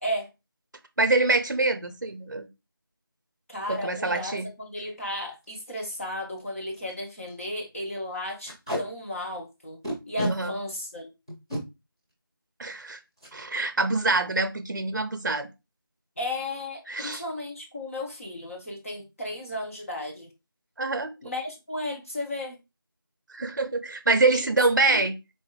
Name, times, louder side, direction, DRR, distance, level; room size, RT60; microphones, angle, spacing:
voice 1, 1.0-2.5 3.7-4.5 10.3-10.5 12.6-13.0 13.3-15.5 16.9-17.2 20.8-21.1 23.3-25.2, right 3 dB, 55° right, 0.6 m, -25 dB
voice 2, 3.5-9.8 10.1-11.1 16.2-20.3 21.2-22.6 24.3-24.5 24.9-25.1, left 1 dB, 35° left, 1.1 m, -34 dB
Packing tape duct tape, 4.8-5.0 5.4-5.5 5.8-5.9 6.4-6.5 6.7-6.9 7.3-7.4 8.4-8.8 9.8-10.3 11.3-11.6 13.2-13.3 13.7-13.9 14.1-14.5, equal, 10° left, 0.7 m, -31 dB
4.3 x 3.1 x 2.3 m
figure-of-eight pair, 175°, 12 cm